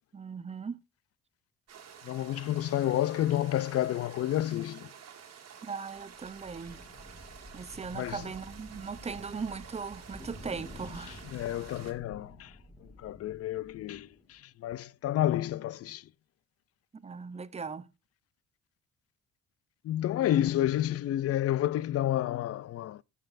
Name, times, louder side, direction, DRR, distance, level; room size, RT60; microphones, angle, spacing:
voice 1, 0.1-0.8 5.6-6.8 7.5-11.2 16.9-17.9, right 5 dB, 20° right, 0.6 m, -39 dB
sound 1, 1.7-11.9, right 7 dB, 55° right, 1.6 m, -51 dB
voice 2, 2.0-4.9 7.9-8.2 11.3-12.5 13.0-16.0 19.8-23.0, left 13 dB, 55° left, 0.4 m, -30 dB
sound 2, 6.0-14.4, left 1 dB, 10° left, 2.6 m, -50 dB
15.5 x 6.8 x 2.5 m
cardioid pair, 90°, 30 cm